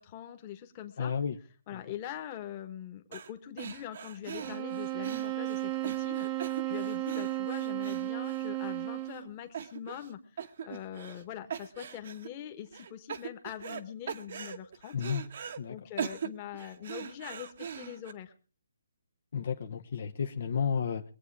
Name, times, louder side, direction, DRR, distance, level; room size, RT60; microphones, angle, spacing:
voice 1, 0.0-1.1 1.7-6.3 6.7-14.9 15.7-18.3, left 11 dB, 25° left, 6 dB, 1.5 m, -43 dB
voice 2, 1.0-1.4 1.7-1.8 14.9-15.2 15.6-15.8 19.3-21.0, left 7 dB, 50° left, 6 dB, 0.9 m, -32 dB
sound 1, 3.1-3.3 3.6-8.8 9.1-9.2 9.5-10.1 10.4-11.2 11.5-12.3 12.7-13.8 14.1-15.6 16.0-18.1, right 7 dB, 45° right, 1.1 m, -41 dB
sound 2, 4.4-9.3, right 17 dB, 20° right, 0.8 m, -34 dB
22.5 x 8.5 x 4.8 m, 0.39 s
hypercardioid pair, 165°, 0 cm